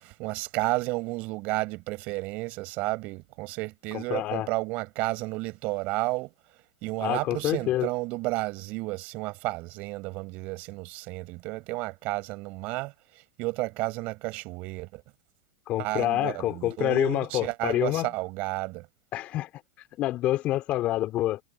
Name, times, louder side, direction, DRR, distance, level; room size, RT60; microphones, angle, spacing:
voice 1, 0.0-6.3 6.8-12.9 13.4-15.0 15.8-18.9, right 23 dB, 50° right, 5.9 m, -32 dB
voice 2, 3.9-4.5 7.0-7.9 15.7-18.1 19.1-19.5 20.0-21.4, left 15 dB, 40° left, 3.6 m, -27 dB
hypercardioid pair, 95°, 3 cm